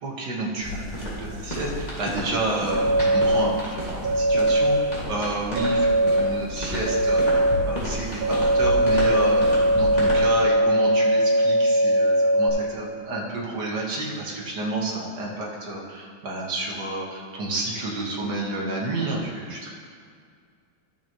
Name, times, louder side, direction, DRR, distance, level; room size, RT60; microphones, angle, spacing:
voice 1, 0.0-9.5 9.7-19.7, right 2 dB, 55° right, -3 dB, 1.9 m, -30 dB
sound 1, 0.6-10.2, equal, 20° left, 2.0 m, -32 dB
sound 2, 2.7-3.4 4.0-4.8 5.6-6.2 6.8-7.6 8.2-12.5, right 1 dB, 75° right, 2.4 m, -20 dB
12.0 x 7.1 x 3.0 m, 2.1 s
omnidirectional pair, 2.3 m